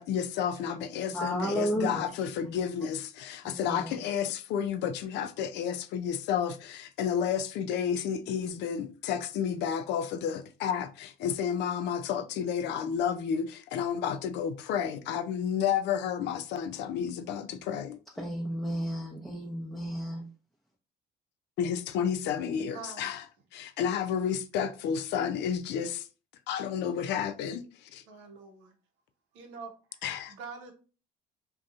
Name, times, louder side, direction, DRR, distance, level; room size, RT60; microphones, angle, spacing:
voice 1, 0.0-18.0 21.6-23.3 23.5-26.1 26.5-28.0 30.0-30.3, left 8 dB, 65° left, 0.4 m, -31 dB
voice 2, 1.1-2.1 3.4-3.9 18.2-20.2, equal, ahead, 0.6 m, -32 dB
voice 3, 22.6-23.1 28.1-28.7 29.3-29.7 30.3-30.7, right 4 dB, 80° right, 0.7 m, -44 dB
2.6 x 2.3 x 2.4 m
supercardioid pair, 70°, 19 cm